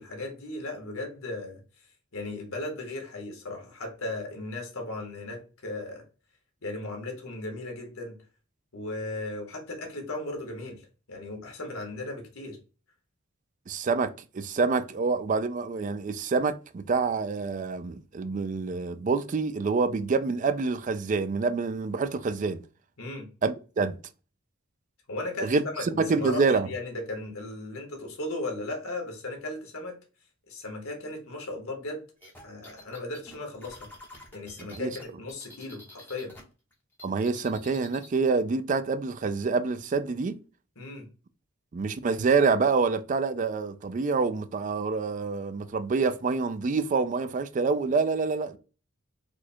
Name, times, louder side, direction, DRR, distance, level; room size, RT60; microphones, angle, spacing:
voice 1, 0.0-6.0 6.6-8.2 8.7-12.6 23.0-23.3 25.1-30.0 30.5-32.0 32.4-33.9 34.3-36.4 40.7-41.1, left 2 dB, 75° left, 1.6 m, -36 dB
voice 2, 13.7-22.6 23.4-24.0 25.4-25.6 26.0-26.7 34.7-34.9 37.0-40.4 41.7-48.6, right 4 dB, 35° right, 0.3 m, -27 dB
sound 1, 32.2-36.4 36.7-38.1, left 1 dB, 10° left, 1.1 m, -48 dB
4.3 x 2.3 x 4.3 m
head